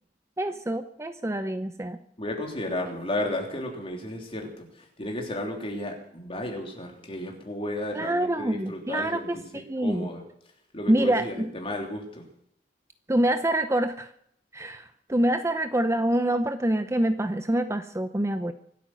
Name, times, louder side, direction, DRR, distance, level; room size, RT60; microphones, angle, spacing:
voice 1, 0.4-2.0 7.9-10.1 10.9-11.5 13.1-14.1 14.5-18.5, right 1 dB, 15° right, 9 dB, 0.7 m, -26 dB
voice 2, 2.2-10.2 10.7-12.2, left 1 dB, 30° left, 2 dB, 3.6 m, -33 dB
25.0 x 8.7 x 6.2 m, 0.69 s
head